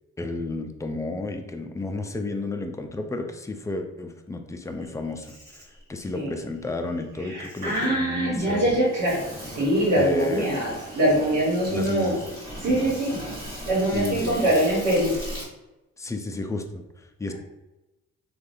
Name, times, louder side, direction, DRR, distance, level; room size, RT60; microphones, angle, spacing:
voice 1, 0.2-8.7 9.9-10.5 11.7-12.3 13.9-14.5 16.0-17.3, left 2 dB, 10° left, 5 dB, 0.3 m, -32 dB
Insect, 4.8-15.5, equal, 30° right, 1.3 m, -39 dB
voice 2, 7.2-12.1 12.6-13.2 13.7-15.1, right 1 dB, 85° right, -7 dB, 1.1 m, -23 dB
3.3 x 2.3 x 2.6 m, 1.0 s
cardioid pair, 70°, 30 cm